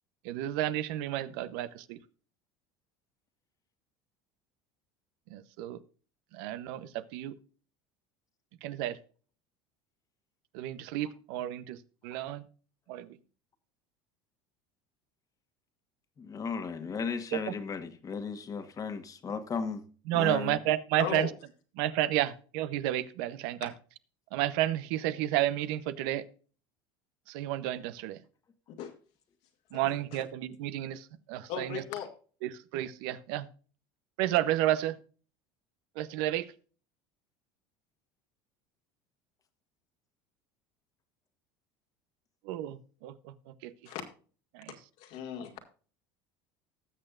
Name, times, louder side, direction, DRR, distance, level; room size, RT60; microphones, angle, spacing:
voice 1, 0.2-2.0 5.3-5.8 6.3-7.3 8.6-9.0 10.5-11.8 12.0-12.4 12.9-13.1 17.5-17.6 20.1-21.3 21.8-23.7 24.3-26.2 27.3-28.2 29.7-31.8 32.4-33.5 34.2-35.0 36.0-36.5 42.5-43.3 43.6-43.7 44.5-44.7, right 13 dB, 75° right, 0.8 m, -31 dB
voice 2, 16.2-19.8 20.1-20.6, left 5 dB, 30° left, 1.4 m, -35 dB
voice 3, 21.0-21.3 28.8-28.9 29.7-30.2 31.5-32.1 43.9-44.1 45.0-45.6, left 8 dB, 65° left, 2.3 m, -37 dB
19.0 x 6.7 x 2.5 m
supercardioid pair, 110°, 12 cm